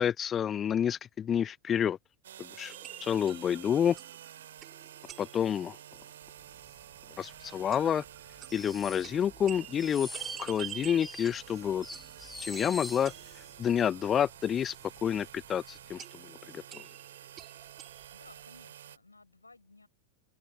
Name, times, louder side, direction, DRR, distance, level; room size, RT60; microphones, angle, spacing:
voice 1, 0.0-2.0 2.4-2.7 3.0-4.0 5.2-5.8 7.2-8.0 8.5-11.9 12.4-14.7 15.0-16.8, left 9 dB, 25° left, 0.6 m, -29 dB
sound 1, 2.2-19.0, right 11 dB, 60° right, 2.9 m, -50 dB
sound 2, 2.7-6.0 6.2-6.3 6.5-6.6 6.9-7.0 7.5-13.8 14.1-14.2 16.0-18.4, right 11 dB, 30° right, 3.2 m, -47 dB
sound 3, 6.7-6.9 7.2-7.3 7.8-13.5 13.9-14.0 14.3-14.9 15.2-15.4 15.9-16.0, left 2 dB, 5° left, 5.1 m, -45 dB
voice 2, 18.1-19.9, left 3 dB, 80° left, 5.2 m, -57 dB
open air
figure-of-eight pair, 90°, 0 cm